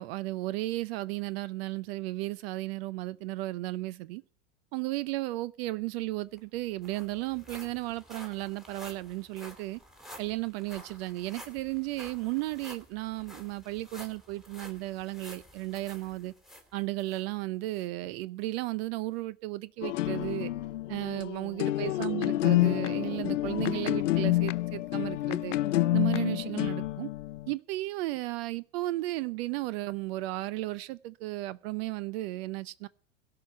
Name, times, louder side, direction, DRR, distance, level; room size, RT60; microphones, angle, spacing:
voice 1, 0.0-4.2 4.7-9.8 10.2-16.3 16.7-20.5 20.9-25.5 25.9-27.1 27.5-32.9, right 18 dB, 50° right, 0.7 m, -34 dB
sound 1, 6.0-6.1 6.4-17.2 17.7-17.9 18.4-18.5, equal, ahead, 2.6 m, -51 dB
sound 2, 19.8-27.5, left 16 dB, 70° left, 0.7 m, -28 dB
17.0 x 5.8 x 9.7 m
hypercardioid pair, 95°, 38 cm